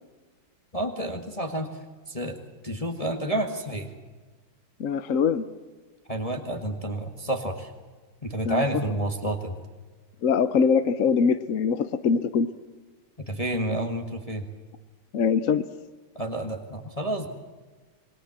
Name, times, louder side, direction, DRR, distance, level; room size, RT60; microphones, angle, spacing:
voice 1, 0.7-1.7 2.1-2.3 2.6-3.9 6.1-7.7 8.2-9.5 13.3-14.4 16.1-17.3, right 1 dB, 15° left, 5 dB, 1.8 m, -29 dB
voice 2, 4.8-5.4 8.4-8.6 10.2-12.5 15.1-15.7, left 6 dB, 55° left, 11 dB, 0.9 m, -23 dB
27.0 x 21.0 x 7.4 m, 1.3 s
omnidirectional pair, 2.3 m